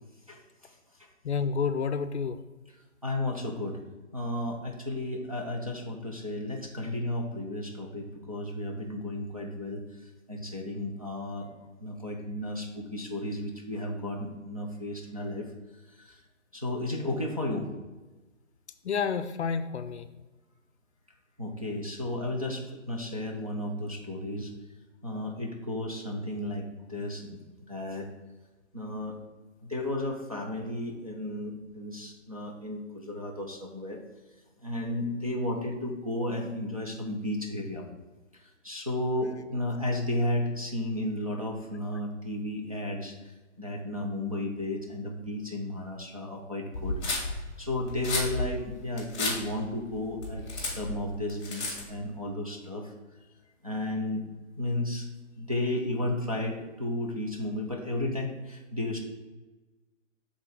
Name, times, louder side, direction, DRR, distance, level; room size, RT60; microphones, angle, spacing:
voice 1, 0.3-0.7 3.0-3.8 4.1-9.8 10.3-11.5 11.8-15.5 16.0-16.2 16.5-17.7 21.4-24.5 25.0-27.4 27.7-28.1 28.7-29.2 29.7-34.0 34.6-37.8 38.6-43.1 43.6-47.0 47.3-52.9 53.6-54.2 54.6-55.1 55.4-59.0, left 1 dB, 30° right, -2 dB, 0.4 m, -33 dB
voice 2, 1.2-2.4 18.8-20.1, left 6 dB, 60° left, 9 dB, 0.5 m, -29 dB
sound 1, 46.7-52.0, left 2 dB, 20° left, 1.4 m, -33 dB
5.9 x 3.7 x 4.8 m, 1.2 s
hypercardioid pair, 170°, 39 cm